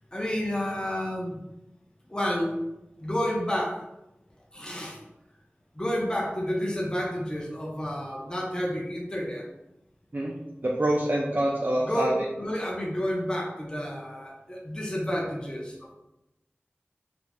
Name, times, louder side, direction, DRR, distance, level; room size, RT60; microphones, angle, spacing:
voice 1, 0.1-1.4 2.1-2.6 3.0-3.8 4.5-5.0 5.7-9.4 11.8-12.1 12.4-15.9, equal, 20° left, -1 dB, 0.6 m, -30 dB
voice 2, 10.6-12.1, right 1 dB, 45° right, -3 dB, 0.4 m, -26 dB
2.4 x 2.0 x 3.3 m, 0.92 s
wide cardioid pair, 45°, 4 cm